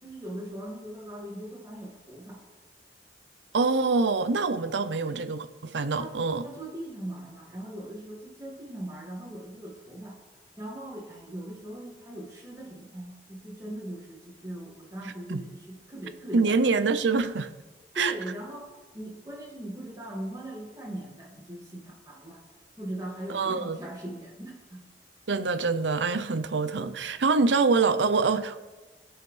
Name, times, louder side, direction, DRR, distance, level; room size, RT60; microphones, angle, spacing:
voice 1, 0.0-2.4 5.0-5.2 6.0-10.2 10.6-16.7 18.0-22.4 22.8-24.8, right 1 dB, 20° right, 2.1 m, -40 dB
voice 2, 3.5-6.4 15.3-15.4 16.3-17.5 17.9-18.1 23.3-23.8 25.3-28.6, right 4 dB, 90° right, 0.6 m, -25 dB
16.0 x 6.5 x 3.3 m
head